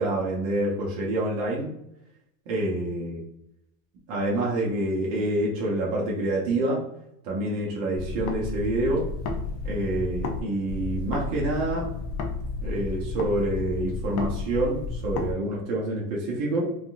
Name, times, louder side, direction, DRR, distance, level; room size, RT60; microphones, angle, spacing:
voice 1, 0.0-1.7 2.5-3.2 4.1-6.8 7.2-9.1 9.6-11.9 12.6-16.7, right 1 dB, 45° right, -4 dB, 0.9 m, -27 dB
sound 1, 8.0-10.4 10.7-15.3, left 3 dB, 45° left, 0.5 m, -32 dB
3.6 x 2.3 x 2.4 m, 0.81 s
supercardioid pair, 160°, 42 cm